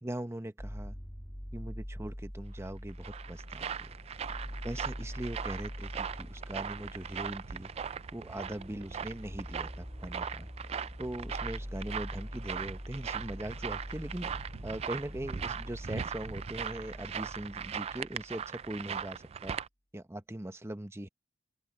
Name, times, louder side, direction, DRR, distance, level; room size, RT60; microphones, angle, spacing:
voice 1, 0.0-1.0 1.5-3.9 4.6-7.7 8.1-10.5 11.0-19.6 19.9-21.1, right 1 dB, 15° right, 1.0 m, -41 dB
sound 1, 0.6-18.5, equal, 5° left, 2.0 m, -44 dB
sound 2, 2.6-19.7, right 7 dB, 35° right, 0.3 m, -40 dB
open air
head